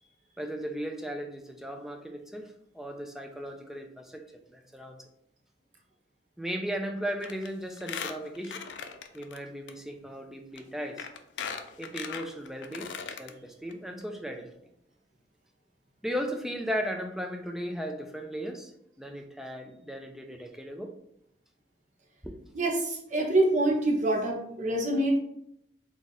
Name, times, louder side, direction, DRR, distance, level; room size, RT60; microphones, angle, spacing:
voice 1, 0.4-4.2 4.5-5.1 6.4-8.6 9.1-11.1 11.8-12.9 13.2-14.5 16.0-18.7 19.0-20.9 22.2-22.3, equal, ahead, 4 dB, 0.4 m, -36 dB
Squeak, 7.2-7.5 7.8-9.4 9.7-9.8 10.6-10.7 11.0-13.3 13.7-13.8 14.0-14.1, left 6 dB, 85° left, 0.4 m, -38 dB
voice 2, 22.5-25.2, right 1 dB, 45° right, 0 dB, 0.6 m, -26 dB
3.7 x 2.4 x 4.0 m, 0.75 s
head